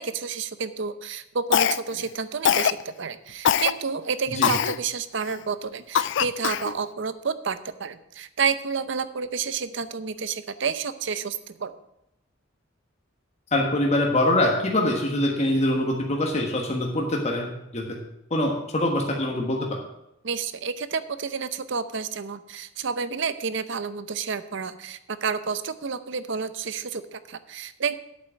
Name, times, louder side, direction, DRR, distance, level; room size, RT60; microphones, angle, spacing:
voice 1, 0.0-11.7 20.2-28.0, right 5 dB, 65° right, 13 dB, 0.7 m, -30 dB
Cough, 1.5-2.0 2.4-2.8 3.4-3.7 4.4-4.8 5.3-5.4 5.9-6.7, left 9 dB, 65° left, 0.4 m, -22 dB
voice 2, 13.5-18.0 18.3-19.7, left 1 dB, 35° left, 0 dB, 1.4 m, -24 dB
8.6 x 7.8 x 7.4 m, 0.85 s
head